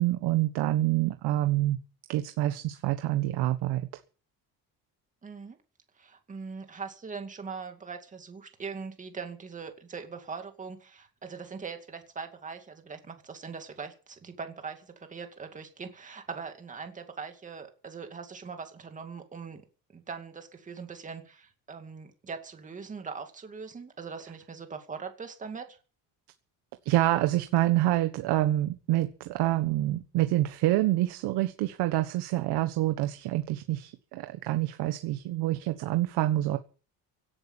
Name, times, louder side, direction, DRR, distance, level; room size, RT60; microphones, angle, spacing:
voice 1, 0.0-1.8 2.1-3.8 26.8-36.6, right 15 dB, 80° right, 9 dB, 1.5 m, -27 dB
voice 2, 5.2-5.6 6.0-19.6 19.9-25.8, right 5 dB, 20° right, 6 dB, 2.4 m, -41 dB
17.0 x 11.0 x 7.4 m, 0.37 s
cardioid pair, 180°, 39 cm